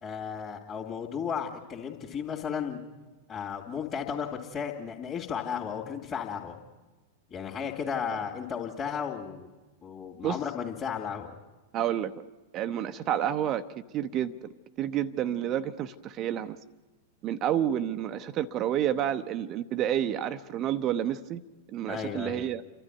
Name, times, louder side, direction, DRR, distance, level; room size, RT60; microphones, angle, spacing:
voice 1, 0.0-2.8 3.3-6.6 7.3-9.5 9.8-11.3 21.9-22.5, left 7 dB, 25° left, -3 dB, 2.6 m, -34 dB
voice 2, 11.7-12.2 12.5-13.6 13.9-14.5 14.8-16.6 17.2-21.4 21.7-22.6, right 10 dB, 35° right, 10 dB, 0.8 m, -29 dB
30.0 x 12.5 x 9.4 m, 1.2 s
figure-of-eight pair, 95°, 0 cm